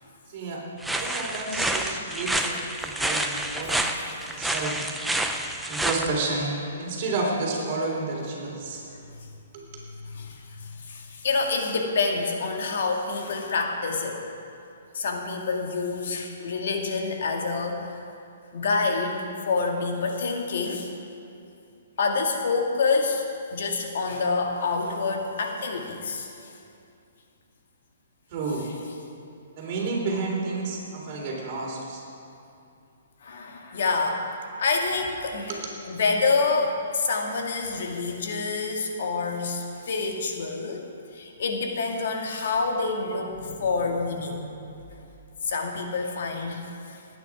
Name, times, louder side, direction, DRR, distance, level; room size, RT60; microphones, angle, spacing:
voice 1, 0.3-0.6 0.9-3.8 4.3-4.8 5.7-8.8 9.5-9.6 28.3-28.7 29.6-32.0 35.5-35.6, right 3 dB, 40° right, -3 dB, 3.4 m, -30 dB
sound 1, 0.8-6.1, right 1 dB, 5° right, 0.6 m, -28 dB
voice 2, 10.0-14.2 14.9-17.9 18.5-20.9 22.0-23.2 23.5-26.3 33.2-34.2 34.6-35.6 35.9-40.9 41.1-44.7 45.4-46.7, left 4 dB, 65° left, 2 dB, 1.8 m, -27 dB
18.5 x 9.2 x 4.8 m, 2.6 s
hypercardioid pair, 150°, 0 cm